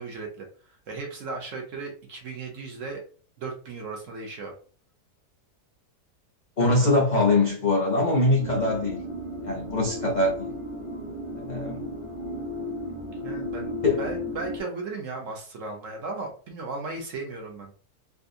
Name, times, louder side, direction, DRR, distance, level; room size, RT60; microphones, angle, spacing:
voice 1, 0.0-3.0 3.4-4.5 13.2-17.7, right 3 dB, 60° right, 1 dB, 1.0 m, -36 dB
voice 2, 6.6-9.0 9.4-10.5 11.3-11.8 13.8-14.1, left 2 dB, 80° left, -1 dB, 0.4 m, -23 dB
sound 1, 8.4-14.6, left 1 dB, 30° right, 0.6 m, -34 dB
3.4 x 2.5 x 2.6 m, 0.41 s
omnidirectional pair, 1.8 m